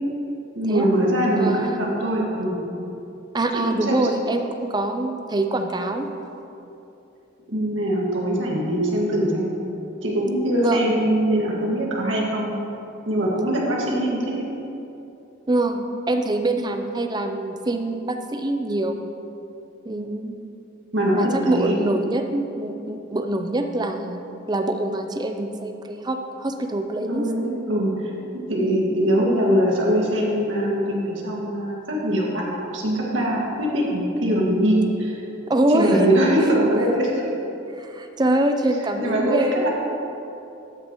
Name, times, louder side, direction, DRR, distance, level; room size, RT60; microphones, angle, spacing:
voice 1, 0.6-2.6 3.5-4.1 7.5-9.5 10.0-12.5 13.1-14.4 20.9-21.8 27.1-27.9 28.5-32.4 32.7-35.2 35.7-37.3 39.0-39.7, right 1 dB, 70° right, -3 dB, 1.9 m, -22 dB
voice 2, 1.3-1.8 3.3-6.1 10.6-10.9 15.5-19.0 19.8-20.3 21.1-24.2 24.5-27.3 28.6-28.9 35.5-36.1 36.4-36.5 37.8-39.6, right 1 dB, 20° right, 6 dB, 0.5 m, -24 dB
13.0 x 8.6 x 3.0 m, 2.9 s
head